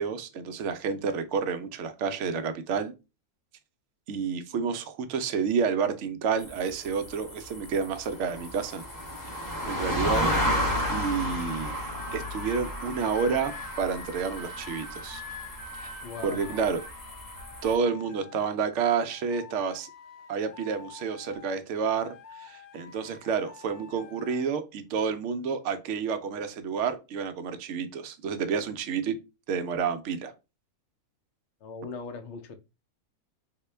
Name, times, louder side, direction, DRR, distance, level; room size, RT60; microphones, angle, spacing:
voice 1, 0.0-2.9 4.1-8.8 9.7-10.3 10.9-11.8 12.1-15.2 15.8-15.9 16.2-16.8 17.6-19.9 20.3-29.2 29.5-30.3, right 6 dB, 65° right, 0.8 m, -29 dB
sound 1, 6.4-17.7, equal, 20° left, 0.6 m, -33 dB
sound 2, 11.9-12.6 13.1-18.7 19.0-21.7 22.0-24.5 25.3-25.6, left 5 dB, 80° left, 1.2 m, -46 dB
voice 2, 16.0-16.7 31.6-32.6, left 4 dB, 65° left, 0.8 m, -40 dB
3.6 x 2.2 x 3.2 m
omnidirectional pair, 1.5 m